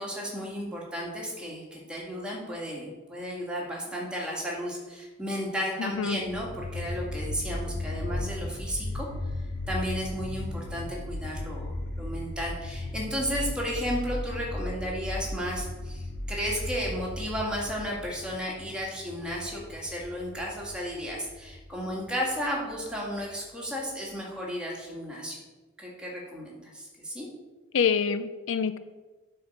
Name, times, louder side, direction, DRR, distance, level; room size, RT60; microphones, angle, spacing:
voice 1, 0.0-9.1 9.7-25.4 25.8-27.3, equal, 5° right, -4 dB, 2.0 m, -33 dB
voice 2, 5.8-6.2 27.7-28.8, left 6 dB, 80° left, 12 dB, 0.5 m, -26 dB
sound 1, 6.2-23.3, left 1 dB, 60° left, 1.1 m, -36 dB
9.2 x 4.4 x 6.5 m, 1.2 s
head